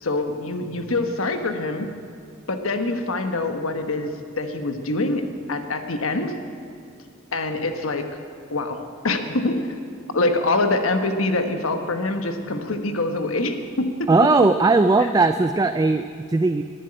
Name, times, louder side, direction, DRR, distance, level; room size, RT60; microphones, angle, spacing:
voice 1, 0.0-1.9 2.5-6.4 7.3-8.1 8.5-9.7 10.1-14.1 15.0-15.1, left 2 dB, 85° left, 6 dB, 1.2 m, -25 dB
voice 2, 14.1-16.6, right 3 dB, 20° right, 9 dB, 0.3 m, -18 dB
12.0 x 10.0 x 10.0 m, 2.3 s
head